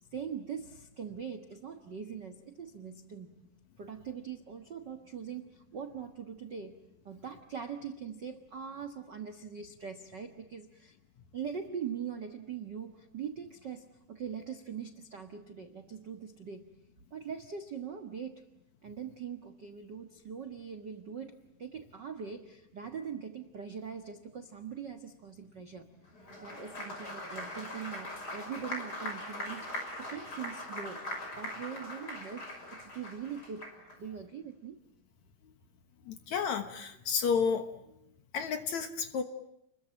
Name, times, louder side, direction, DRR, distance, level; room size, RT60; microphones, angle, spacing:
voice 1, 0.1-3.4 3.8-6.8 7.0-11.0 11.3-16.8 17.1-18.5 18.8-26.0 26.4-31.0 31.4-34.8, right 7 dB, 65° right, 6 dB, 1.0 m, -42 dB
Applause, 26.1-34.0, left 1 dB, 25° left, 6.4 m, -41 dB
voice 2, 36.1-37.7 38.3-39.2, left 6 dB, 60° left, 8 dB, 2.3 m, -31 dB
30.0 x 22.0 x 8.9 m, 0.78 s
omnidirectional pair, 4.4 m